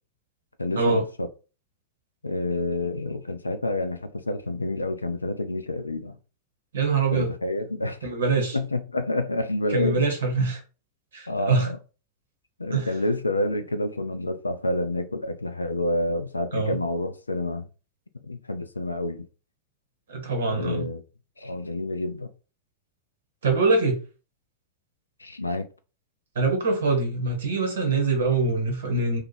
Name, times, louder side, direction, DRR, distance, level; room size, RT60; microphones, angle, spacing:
voice 1, 0.6-1.3 2.2-6.2 7.1-8.0 8.5-10.0 11.3-11.8 12.6-17.7 18.2-19.3 20.4-21.0 21.4-22.3 25.2-25.7, left 2 dB, 80° left, 0.4 m, -28 dB
voice 2, 6.7-7.3 8.0-8.6 9.7-10.6 11.1-11.7 12.7-12.9 16.5-16.8 20.1-20.9 23.4-24.0 26.3-29.2, right 3 dB, 65° right, 1.0 m, -24 dB
2.9 x 2.4 x 4.0 m
figure-of-eight pair, 90°, 0 cm